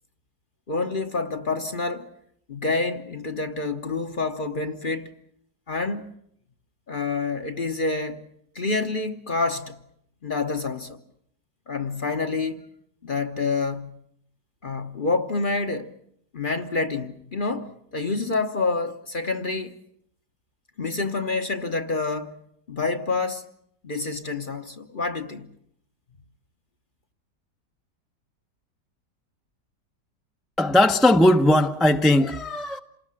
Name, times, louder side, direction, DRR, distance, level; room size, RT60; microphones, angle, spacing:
voice 1, 0.7-2.1 2.5-5.1 5.7-6.1 6.9-8.3 8.5-9.8 10.2-11.0 11.7-12.6 13.0-13.9 14.6-15.9 16.3-19.8 20.8-22.4 22.7-23.5 23.8-25.5, left 3 dB, 35° left, 1.0 m, -27 dB
voice 2, 30.6-32.8, left 1 dB, ahead, 0.6 m, -18 dB
28.0 x 19.0 x 7.5 m
omnidirectional pair, 1.8 m